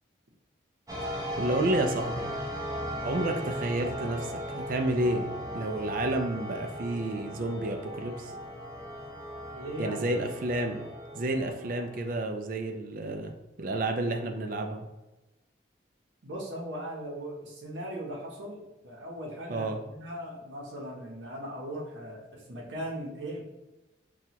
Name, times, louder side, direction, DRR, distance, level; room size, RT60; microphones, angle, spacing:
sound 1, 0.9-12.1, equal, 15° right, 0.8 m, -37 dB
voice 1, 1.0-2.3 3.0-5.3 5.5-8.3 9.8-10.8 11.1-14.9 19.5-19.8, right 1 dB, 45° right, 4 dB, 0.4 m, -30 dB
voice 2, 9.5-10.0 11.4-11.5 16.2-23.4, equal, 70° right, -3 dB, 0.8 m, -39 dB
5.8 x 2.3 x 2.9 m, 1.0 s
head